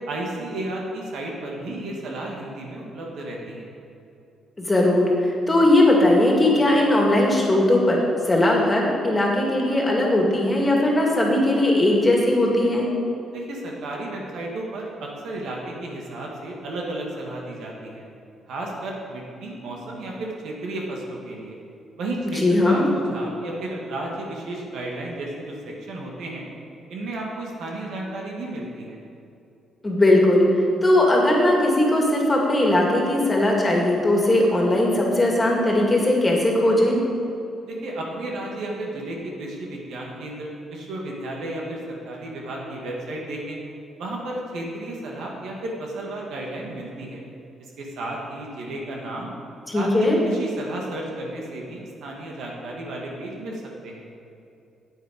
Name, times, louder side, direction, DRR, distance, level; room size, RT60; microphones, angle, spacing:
voice 1, 0.1-3.7 13.3-18.0 18.5-21.6 22.0-26.5 26.9-29.0 37.6-43.6 44.0-47.2 47.8-49.3 49.7-54.0, right 1 dB, 75° right, -1 dB, 1.9 m, -33 dB
voice 2, 4.6-12.9 22.4-22.9 29.8-30.5 30.8-37.0 49.7-50.2, left 1 dB, 20° left, -1 dB, 2.2 m, -19 dB
8.7 x 8.3 x 5.2 m, 2.7 s
cardioid pair, 90°, 0 cm